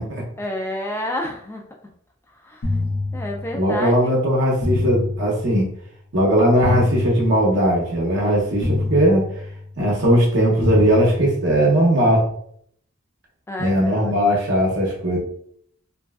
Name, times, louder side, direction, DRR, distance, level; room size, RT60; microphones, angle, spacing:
voice 1, 0.4-1.6 2.4-2.7 3.1-4.1 13.5-14.1, left 1 dB, 10° left, 2 dB, 0.3 m, -29 dB
sound 1, 2.6-3.8 4.6-5.8 6.6-7.8 8.6-9.8 10.6-11.8, left 2 dB, 70° left, 0.7 m, -26 dB
voice 2, 3.5-5.7 6.1-9.3 9.8-12.3 13.6-15.2, equal, 55° right, -3 dB, 0.7 m, -18 dB
3.0 x 2.6 x 2.3 m, 0.66 s
head